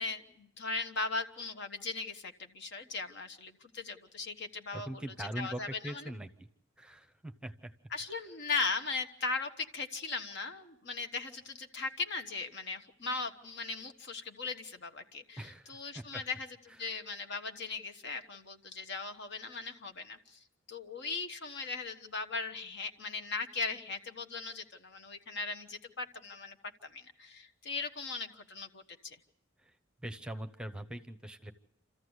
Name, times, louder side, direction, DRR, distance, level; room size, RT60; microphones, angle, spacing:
voice 1, 0.0-6.1 7.9-26.6 26.8-29.2, left 4 dB, 60° left, 7 dB, 1.2 m, -38 dB
voice 2, 4.7-6.3 6.8-7.7 15.4-16.2 30.0-31.5, right 1 dB, 5° right, 8 dB, 0.8 m, -42 dB
28.0 x 14.0 x 8.0 m, 0.81 s
head